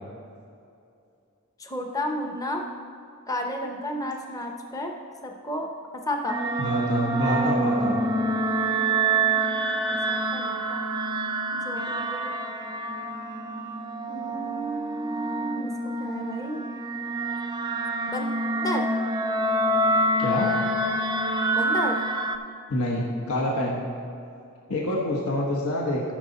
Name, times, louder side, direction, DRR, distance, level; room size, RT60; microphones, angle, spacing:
voice 1, 1.6-2.6 3.3-4.9 5.2-6.4 9.3-9.4 9.8-10.8 11.5-12.3 14.1-16.7 18.1-18.3 18.6-18.9 21.5-22.0, equal, 15° left, 2 dB, 0.7 m, -32 dB
sound 1, 6.3-22.4, right 2 dB, 20° right, 0.4 m, -27 dB
voice 2, 6.6-8.0 20.2-20.5 22.7-23.8 24.7-26.0, left 1 dB, 80° left, -2 dB, 1.3 m, -26 dB
14.0 x 6.4 x 4.1 m, 2.5 s
head